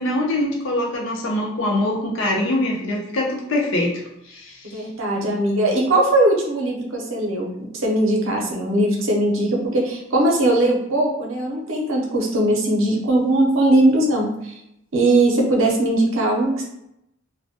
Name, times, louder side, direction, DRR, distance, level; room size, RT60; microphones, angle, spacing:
voice 1, 0.0-4.8, left 1 dB, 65° left, -1 dB, 0.6 m, -23 dB
voice 2, 4.6-14.6 14.9-16.6, right 1 dB, 70° right, 0 dB, 0.6 m, -20 dB
2.2 x 2.1 x 2.7 m, 0.82 s
head